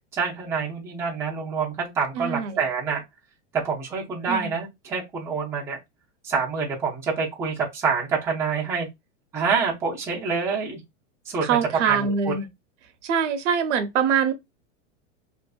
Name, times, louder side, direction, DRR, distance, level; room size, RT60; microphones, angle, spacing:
voice 1, 0.1-3.0 3.5-5.8 6.2-8.9 9.3-10.8 11.3-11.6 11.8-12.3, right 5 dB, 10° right, 0.5 m, -27 dB
voice 2, 2.1-2.6 4.3-4.5 11.4-12.5 13.0-14.3, right 7 dB, 70° right, 0.8 m, -24 dB
2.6 x 2.5 x 2.3 m
supercardioid pair, 155°, 37 cm